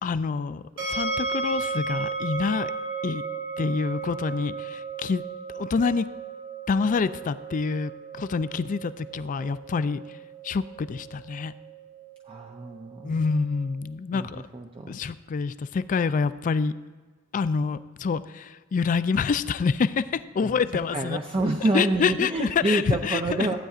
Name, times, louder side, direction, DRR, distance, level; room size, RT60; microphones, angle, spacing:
voice 1, 0.0-0.6 0.9-2.7 3.0-3.2 3.6-5.2 5.5-6.1 6.7-7.9 8.2-10.0 10.4-11.5 13.0-14.4 14.9-16.7 17.3-21.2 21.7-23.2, left 5 dB, 40° left, 14 dB, 0.3 m, -26 dB
sound 1, 0.8-13.8, right 4 dB, 85° right, 3.1 m, -35 dB
voice 2, 12.3-13.1 14.1-14.9 20.4-20.6 20.9-23.6, right 2 dB, 30° right, 2 dB, 0.5 m, -28 dB
15.0 x 9.0 x 2.4 m, 1.4 s
head